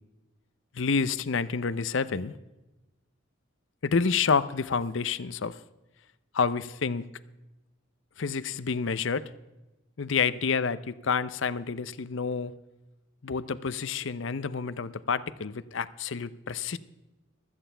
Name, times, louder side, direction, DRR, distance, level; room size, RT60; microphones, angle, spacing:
voice 1, 0.7-2.3 3.8-5.6 6.3-7.0 8.2-9.3 10.0-12.5 13.2-16.8, left 5 dB, 65° left, 16 dB, 0.6 m, -28 dB
16.0 x 13.5 x 3.4 m, 1.0 s
head